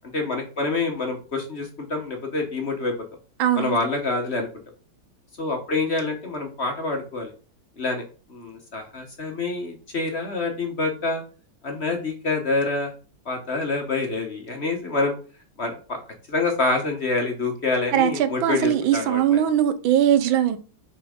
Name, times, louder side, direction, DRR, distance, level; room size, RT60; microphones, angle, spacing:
voice 1, 0.1-2.9 3.6-4.5 5.4-7.3 7.8-11.2 11.6-12.9 13.2-15.1 15.6-16.0 16.3-19.4, left 3 dB, 40° left, 1.2 m, -26 dB
voice 2, 3.4-3.8 17.9-20.6, right 10 dB, 85° right, 1.6 m, -20 dB
5.7 x 4.6 x 5.1 m
omnidirectional pair, 2.1 m